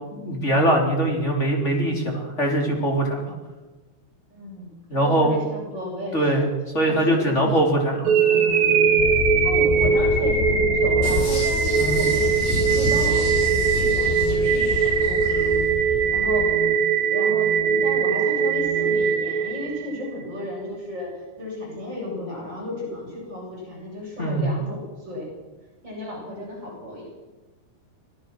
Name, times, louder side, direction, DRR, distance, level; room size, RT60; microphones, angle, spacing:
voice 1, 0.1-3.3 4.9-5.4 6.1-8.1 11.7-12.0 24.2-24.5, right 1 dB, 15° left, 1 dB, 3.6 m, -22 dB
voice 2, 4.3-6.4 6.8-7.6 8.0-8.6 9.4-15.6 16.1-16.6 17.1-25.3 25.8-27.1, left 1 dB, 25° right, -4 dB, 8.5 m, -34 dB
sound 1, 8.0-20.1, right 6 dB, 70° right, 4.4 m, -21 dB
sound 2, 9.0-16.5, left 11 dB, 75° left, 2.6 m, -29 dB
sound 3, 11.0-15.5 15.9-16.0, left 1 dB, 40° left, 7.2 m, -32 dB
24.5 x 18.5 x 6.2 m, 1.2 s
omnidirectional pair, 5.1 m